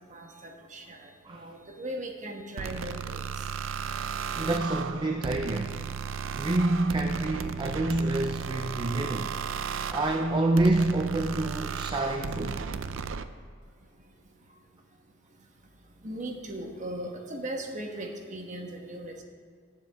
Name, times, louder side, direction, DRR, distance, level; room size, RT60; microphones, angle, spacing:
voice 1, 0.0-3.2 16.0-19.2, right 1 dB, 40° right, 1.3 m, -38 dB
sound 1, 2.6-13.3, right 6 dB, 85° right, 0.5 m, -35 dB
voice 2, 4.4-5.8 6.3-9.4 9.9-12.6, right 2 dB, 25° right, 0.5 m, -27 dB
18.5 x 7.3 x 3.5 m
head